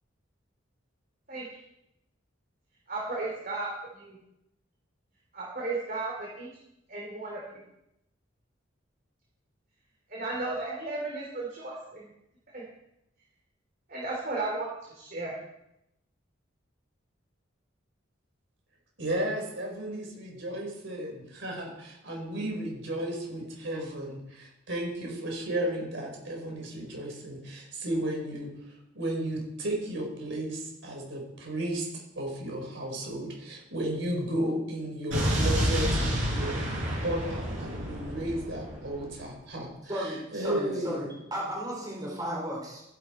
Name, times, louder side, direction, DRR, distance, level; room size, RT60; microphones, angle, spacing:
voice 1, 2.9-3.7 4.0-4.2 5.3-6.5 6.9-7.4 10.1-12.0 12.5-12.6 13.9-15.3, right 2 dB, 45° right, -3 dB, 3.4 m, -34 dB
voice 2, 19.0-31.9 32.1-41.1, right 1 dB, 65° right, 0 dB, 4.6 m, -34 dB
Explosion, 35.1-39.2, equal, 90° right, 6.2 m, -29 dB
voice 3, 39.9-42.8, equal, 20° right, -3 dB, 4.3 m, -34 dB
14.5 x 11.5 x 4.5 m, 0.84 s
head